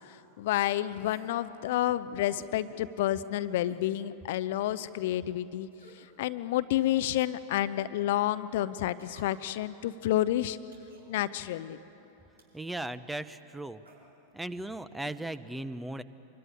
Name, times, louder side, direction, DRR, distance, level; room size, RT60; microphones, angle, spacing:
voice 1, 0.1-5.7 6.2-10.6 11.1-11.8, left 13 dB, 55° left, 14 dB, 0.7 m, -30 dB
sound 1, 1.0-1.4 2.4-2.6 3.7-3.9 4.4-4.5 5.7-6.1 7.0-7.4 9.0-9.6 10.7-11.1 12.4-12.7 13.8-14.0 15.0-15.2 15.5-15.6, right 3 dB, 75° right, 5.2 m, -54 dB
voice 2, 12.5-13.8 14.3-16.0, right 1 dB, 5° right, 15 dB, 0.8 m, -37 dB
25.0 x 22.5 x 9.8 m, 2.9 s
figure-of-eight pair, 90°, 0 cm